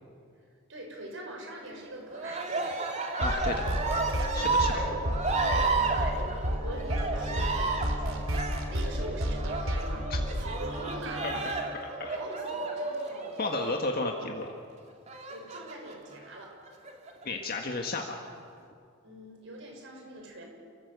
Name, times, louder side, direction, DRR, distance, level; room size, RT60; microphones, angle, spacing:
voice 1, 0.7-3.0 3.5-4.3 4.7-5.1 5.4-10.0 10.4-11.3 12.1-13.5 14.0-14.1 15.3-16.5 19.0-20.4, right 1 dB, 60° right, 1 dB, 6.3 m, -43 dB
Cheering, 2.1-13.8 15.1-15.9 16.7-17.3, right 3 dB, 30° right, 2.7 m, -32 dB
voice 2, 3.2-3.7 4.3-4.8 10.1-10.2 11.2-11.4 12.0-12.2 13.4-14.5 17.2-18.2, left 2 dB, 45° left, 2 dB, 1.7 m, -32 dB
sound 1, 3.2-11.6, equal, 75° right, 3.4 m, -32 dB
29.5 x 15.5 x 8.2 m, 2.3 s
head